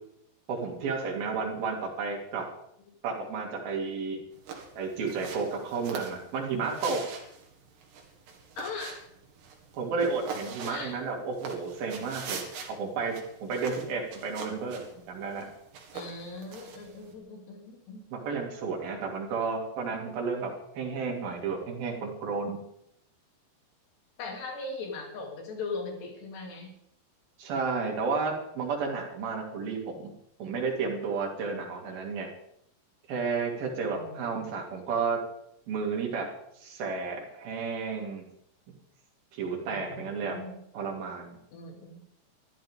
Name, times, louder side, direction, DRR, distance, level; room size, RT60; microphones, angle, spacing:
voice 1, 0.5-2.4 3.0-4.2 4.8-7.0 9.7-12.4 12.7-15.5 18.1-22.7 27.4-30.1 30.4-32.3 33.1-35.2 35.7-36.3 36.6-38.2 39.3-40.4 40.7-41.4, right 4 dB, 60° right, 0 dB, 4.6 m, -32 dB
sound 1, 4.3-17.1, right 5 dB, 80° right, 4.2 m, -44 dB
voice 2, 8.6-9.0 10.6-11.0 15.9-18.0 24.2-26.7 33.9-34.5 39.7-40.6 41.5-42.1, left 3 dB, 80° left, 1 dB, 5.2 m, -39 dB
24.0 x 13.5 x 3.7 m, 0.75 s
omnidirectional pair, 4.8 m